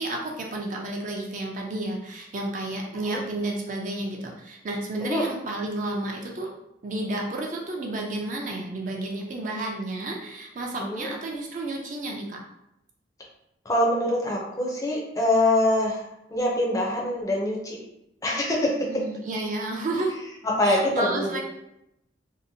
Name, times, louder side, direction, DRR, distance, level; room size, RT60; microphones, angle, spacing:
voice 1, 0.0-6.5 6.8-12.4 18.9-20.2 20.6-21.4, right 2 dB, 45° right, 0 dB, 0.4 m, -31 dB
voice 2, 10.8-11.1 13.6-16.0 16.3-17.8 18.2-19.0 20.4-21.4, left 1 dB, 20° left, -2 dB, 0.4 m, -24 dB
2.7 x 2.0 x 2.6 m, 0.83 s
head